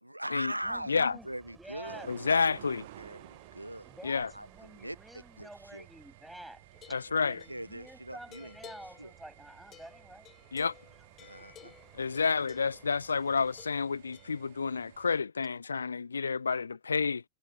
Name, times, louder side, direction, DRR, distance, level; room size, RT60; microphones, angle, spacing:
voice 1, 0.0-2.1 3.0-3.9 4.3-5.9 7.1-8.7 9.0-9.1 11.2-11.7, right 1 dB, 85° right, 0.6 m, -41 dB
voice 2, 0.6-2.1 3.8-6.6 7.2-10.3 11.3-11.8, right 1 dB, 5° right, 7.8 m, -50 dB
sound 1, 0.6-13.6, right 9 dB, 25° right, 5.0 m, -61 dB
sound 2, 1.8-15.2, right 15 dB, 55° right, 1.3 m, -55 dB
voice 3, 2.1-2.8 4.0-4.3 6.9-7.4 10.5-10.7 12.0-17.2, left 5 dB, 75° left, 0.3 m, -30 dB
sound 3, 6.7-13.0 13.6-14.4, left 11 dB, 30° left, 4.2 m, -56 dB
figure-of-eight pair, 90°, 0 cm